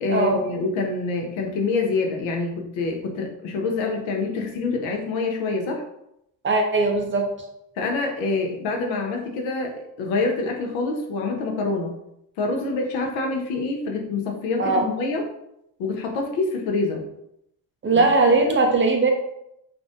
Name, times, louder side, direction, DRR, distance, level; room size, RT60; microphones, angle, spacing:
voice 1, 0.0-5.8 7.8-11.9 12.4-15.3 15.8-17.0 17.9-18.1 18.4-18.6, left 3 dB, 70° left, 1 dB, 0.7 m, -26 dB
voice 2, 6.4-7.3 14.6-14.8 17.8-19.1, right 3 dB, 25° right, 2 dB, 0.4 m, -19 dB
2.4 x 2.1 x 2.6 m, 0.81 s
hypercardioid pair, 50°, 48 cm